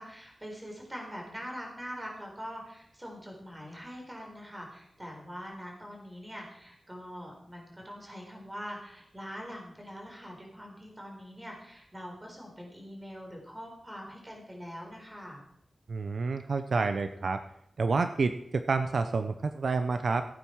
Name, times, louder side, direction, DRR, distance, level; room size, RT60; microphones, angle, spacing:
voice 1, 0.0-15.4, equal, 15° right, -1 dB, 4.2 m, -43 dB
voice 2, 15.9-17.4 17.8-20.3, right 4 dB, 65° right, 8 dB, 0.7 m, -29 dB
16.5 x 9.0 x 4.7 m, 0.72 s
wide cardioid pair, 130°, 0 cm